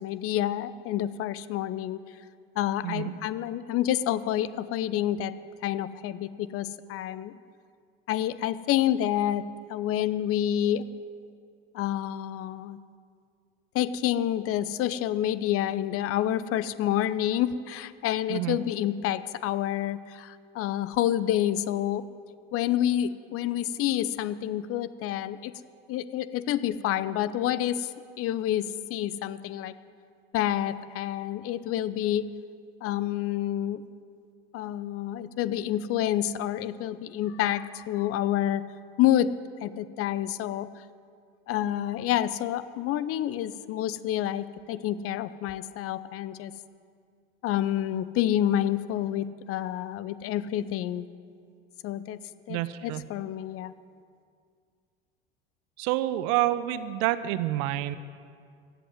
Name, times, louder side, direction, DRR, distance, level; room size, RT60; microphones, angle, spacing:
voice 1, 0.0-2.0 2.6-5.4 5.6-7.3 8.1-9.4 9.7-10.8 11.7-12.8 13.7-22.1 22.5-25.5 25.9-27.9 28.2-29.7 30.3-32.3 32.8-33.8 34.5-38.6 39.0-39.3 39.6-40.7 41.5-46.5 47.4-51.1 51.8-52.2 52.5-53.7, left 12 dB, 50° left, 16 dB, 0.7 m, -28 dB
voice 2, 52.5-53.0 55.8-58.0, right 14 dB, 60° right, 14 dB, 0.8 m, -28 dB
15.5 x 8.1 x 9.5 m, 2.2 s
hypercardioid pair, 70°, 30 cm